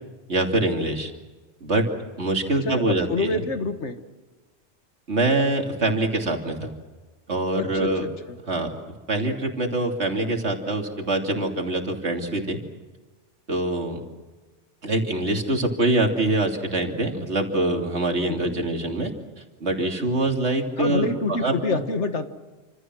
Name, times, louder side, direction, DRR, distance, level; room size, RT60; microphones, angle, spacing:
voice 1, 0.3-1.1 1.6-1.8 2.2-3.4 5.1-6.7 7.3-8.1 8.5-8.7 9.1-12.6 13.5-14.0 14.8-19.1 19.6-21.8, right 2 dB, 70° right, 2 dB, 3.3 m, -24 dB
voice 2, 2.7-4.0 7.6-8.4 18.3-18.6 20.8-22.3, left 3 dB, 75° left, 8 dB, 1.9 m, -27 dB
29.0 x 26.5 x 6.3 m, 1.3 s
omnidirectional pair, 1.2 m